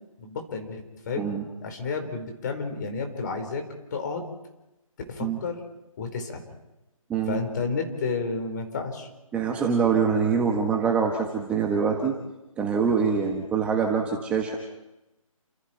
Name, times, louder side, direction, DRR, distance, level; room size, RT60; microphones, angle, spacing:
voice 1, 0.2-1.3 1.6-3.6 3.9-4.2 5.1-5.6 6.0-6.4 7.3-9.1, left 4 dB, 35° left, 5 dB, 4.4 m, -31 dB
voice 2, 7.1-7.4 9.3-12.1 12.6-14.5, right 6 dB, 5° right, 0 dB, 1.3 m, -24 dB
29.5 x 27.5 x 4.5 m, 0.96 s
figure-of-eight pair, 160°, 18 cm